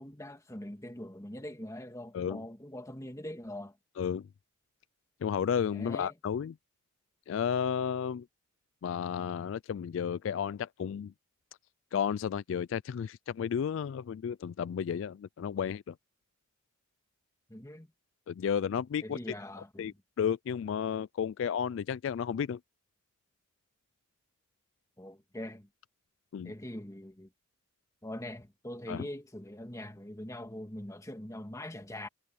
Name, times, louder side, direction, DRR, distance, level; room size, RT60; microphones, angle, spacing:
voice 1, 0.0-3.8 5.7-6.1 17.5-17.9 19.0-20.0 25.0-25.7 26.4-27.3 28.0-32.1, left 1 dB, 15° left, 1.8 m, -42 dB
voice 2, 4.0-4.3 5.2-6.5 7.3-8.3 8.8-11.1 11.9-15.9 18.3-19.2 19.8-22.6 26.3-26.5 28.9-29.1, left 7 dB, 65° left, 0.3 m, -32 dB
head